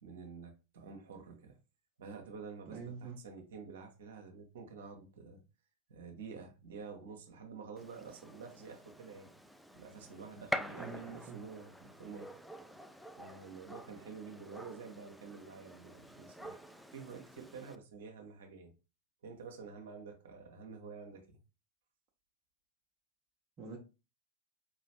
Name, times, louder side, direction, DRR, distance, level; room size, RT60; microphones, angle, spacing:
voice 1, 0.0-1.6 2.0-5.4 5.9-9.3 9.7-12.3 13.2-16.6 16.9-18.7 19.2-21.4, right 5 dB, 60° right, 0.9 m, -49 dB
voice 2, 2.7-3.2 10.8-11.4 23.6-23.8, right 5 dB, 30° right, 0.9 m, -45 dB
Gunshot gunfire, 7.8-17.7, equal, ahead, 0.3 m, -46 dB
4.5 x 3.0 x 2.9 m
figure-of-eight pair, 90°, 0 cm